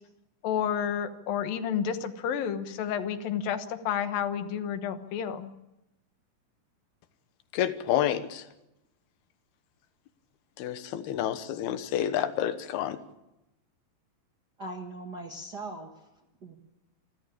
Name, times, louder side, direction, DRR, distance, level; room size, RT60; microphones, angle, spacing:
voice 1, 0.4-5.5, left 8 dB, 75° left, 2.9 m, -30 dB
voice 2, 7.5-8.4 10.6-13.0, left 11 dB, 90° left, 3.2 m, -29 dB
voice 3, 14.6-16.1 16.4-16.5, right 2 dB, 45° right, 1.4 m, -40 dB
27.0 x 14.5 x 8.7 m
omnidirectional pair, 4.3 m